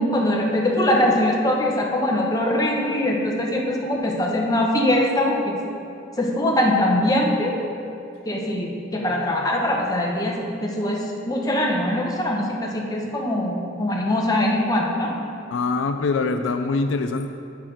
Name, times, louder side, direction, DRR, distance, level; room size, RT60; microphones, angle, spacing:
voice 1, 0.0-5.6 6.2-7.6 8.2-15.1, left 1 dB, 20° left, -1 dB, 1.1 m, -22 dB
voice 2, 15.5-17.3, left 3 dB, 80° left, 8 dB, 0.4 m, -23 dB
7.4 x 5.8 x 6.3 m, 2.6 s
head